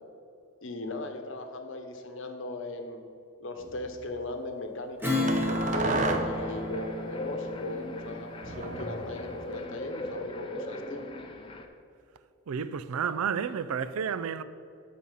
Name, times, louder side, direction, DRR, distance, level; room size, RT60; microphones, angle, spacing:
voice 1, 0.6-3.0 3.4-11.0, left 2 dB, 60° left, 0.9 m, -38 dB
sound 1, 3.6-3.9 5.3-6.5 8.4-9.6, right 2 dB, 35° right, 0.6 m, -32 dB
Strum, 5.0-9.9, left 1 dB, 10° right, 1.1 m, -33 dB
sound 2, 5.9-11.7, left 1 dB, 25° left, 0.5 m, -39 dB
voice 2, 12.5-14.4, right 7 dB, 85° right, 0.4 m, -31 dB
12.0 x 4.2 x 5.6 m
head